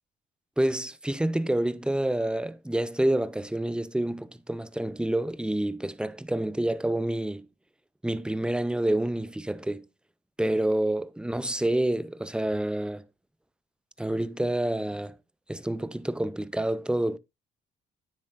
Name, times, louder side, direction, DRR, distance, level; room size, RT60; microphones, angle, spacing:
voice 1, 0.6-7.4 8.0-9.8 10.4-13.0 14.0-15.1 15.5-17.2, right 1 dB, 5° right, 0.5 m, -28 dB
9.6 x 7.5 x 2.5 m
cardioid pair, 90°, 20 cm